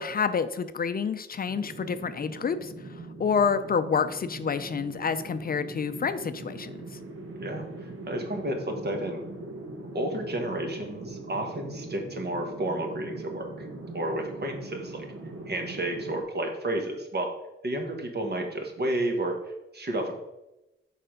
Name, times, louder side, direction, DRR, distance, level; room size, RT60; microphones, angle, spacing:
voice 1, 0.0-2.7 3.2-6.8, left 6 dB, 45° left, 11 dB, 0.4 m, -28 dB
sound 1, 1.5-16.2, right 2 dB, 90° right, 1.2 m, -41 dB
voice 2, 7.4-9.2 9.9-13.7 13.9-15.0 15.5-17.3 17.6-19.4 19.7-20.2, right 1 dB, 50° right, 3 dB, 1.4 m, -31 dB
6.8 x 5.0 x 5.0 m, 0.95 s
wide cardioid pair, 130°, 21 cm